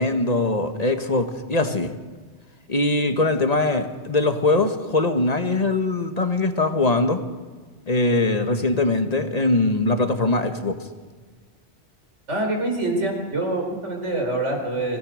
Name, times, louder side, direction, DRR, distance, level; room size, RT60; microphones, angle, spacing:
voice 1, 0.0-1.9 2.7-7.2 7.9-10.8, left 2 dB, 35° left, 7 dB, 1.7 m, -21 dB
voice 2, 12.3-15.0, right 2 dB, 75° right, 2 dB, 5.0 m, -25 dB
25.5 x 17.5 x 6.5 m, 1.4 s
omnidirectional pair, 1.2 m